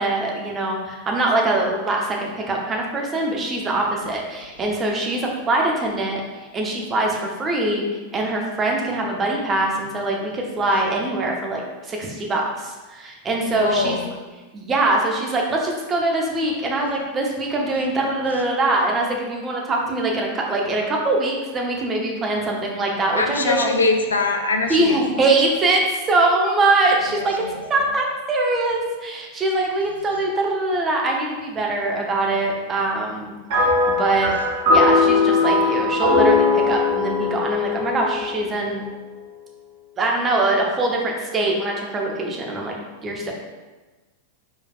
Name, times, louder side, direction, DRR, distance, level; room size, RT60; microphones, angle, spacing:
voice 1, 0.0-6.2 6.5-7.8 8.1-14.0 14.5-23.7 24.7-25.8 26.1-34.3 34.7-38.8 40.0-42.8 43.0-43.3, right 2 dB, 25° right, 0 dB, 0.8 m, -23 dB
voice 2, 13.5-14.0 23.2-25.0 27.4-27.5, left 3 dB, 70° left, 4 dB, 0.4 m, -22 dB
sound 1, 33.5-39.0, left 3 dB, 45° right, 1.2 m, -20 dB
4.6 x 4.3 x 2.4 m, 1.2 s
figure-of-eight pair, 90°, 0 cm